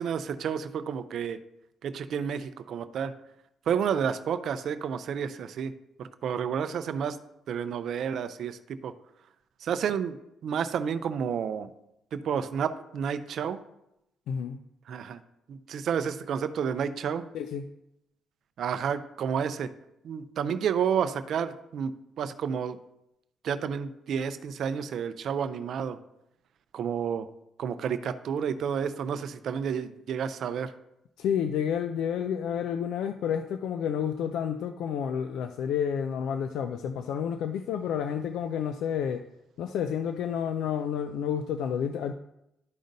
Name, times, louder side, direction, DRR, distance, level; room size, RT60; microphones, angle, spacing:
voice 1, 0.0-1.4 1.8-3.1 3.7-5.7 6.0-7.2 7.5-8.9 9.6-11.7 12.1-13.6 14.9-15.2 15.5-17.3 18.6-19.7 20.0-22.8 23.4-26.0 26.7-27.3 27.6-30.7, right 7 dB, 65° right, 11 dB, 0.4 m, -30 dB
voice 2, 14.3-14.6 17.3-17.6 31.2-39.3 39.6-42.1, left 8 dB, 85° left, 8 dB, 0.3 m, -30 dB
11.5 x 5.1 x 2.6 m, 0.84 s
cardioid pair, 110°, 0 cm